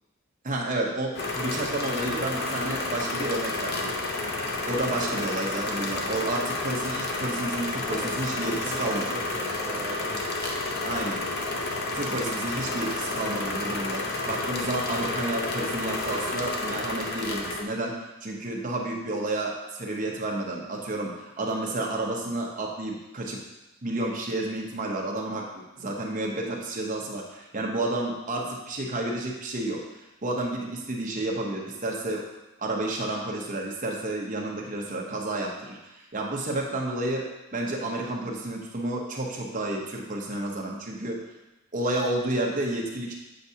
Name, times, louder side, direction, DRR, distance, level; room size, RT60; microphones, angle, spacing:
voice 1, 0.4-3.9 4.7-9.1 10.8-11.2 11.9-23.4 23.8-32.2 32.6-37.3 37.5-41.2 41.7-43.1, right 2 dB, 35° right, -1 dB, 0.9 m, -31 dB
sound 1, 1.2-17.6, left 2 dB, 45° left, 0.7 m, -30 dB
voice 2, 7.9-10.3, right 2 dB, 15° right, -3 dB, 0.4 m, -40 dB
7.6 x 4.6 x 2.8 m, 1.0 s
head